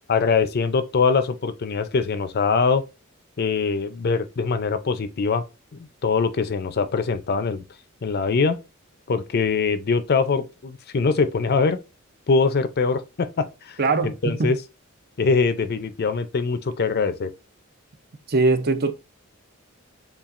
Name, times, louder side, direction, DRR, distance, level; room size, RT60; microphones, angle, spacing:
voice 1, 0.1-2.8 3.4-5.4 5.7-7.6 8.0-8.6 9.1-11.8 12.3-13.8 14.0-14.6 15.2-17.3, left 4 dB, 50° left, 0.5 m, -23 dB
voice 2, 13.8-14.1 14.4-14.5 18.3-18.9, right 3 dB, 50° right, 0.6 m, -20 dB
7.0 x 2.4 x 2.5 m
head